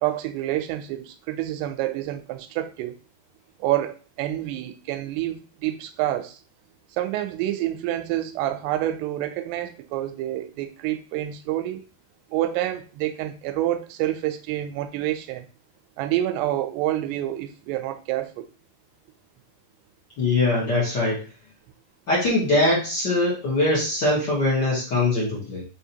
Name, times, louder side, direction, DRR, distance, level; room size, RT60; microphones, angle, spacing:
voice 1, 0.0-3.0 3.6-6.4 6.9-11.8 12.3-15.5 16.0-18.5, right 13 dB, 85° right, 2.6 m, -28 dB
voice 2, 20.2-21.2 22.1-25.6, left 2 dB, 60° left, 1.1 m, -22 dB
6.2 x 2.8 x 2.7 m
omnidirectional pair, 4.8 m